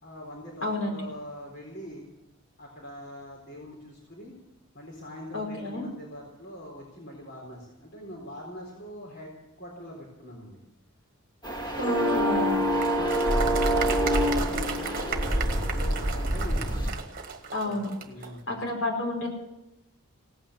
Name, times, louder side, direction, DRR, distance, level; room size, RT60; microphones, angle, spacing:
voice 1, 0.0-2.1 2.6-4.3 4.7-10.6 12.7-16.9 17.6-17.8 18.0-18.6, left 1 dB, 50° left, -2 dB, 4.1 m, -43 dB
voice 2, 0.6-1.0 5.3-5.8 11.8-12.6 17.5-17.9 18.5-19.3, left 2 dB, 70° left, 1 dB, 5.1 m, -30 dB
sound 1, 11.4-16.9, equal, 20° left, 2.8 m, -26 dB
Applause, 12.8-18.3, right 6 dB, 40° right, 1.4 m, -35 dB
17.5 x 9.2 x 8.6 m, 0.91 s
head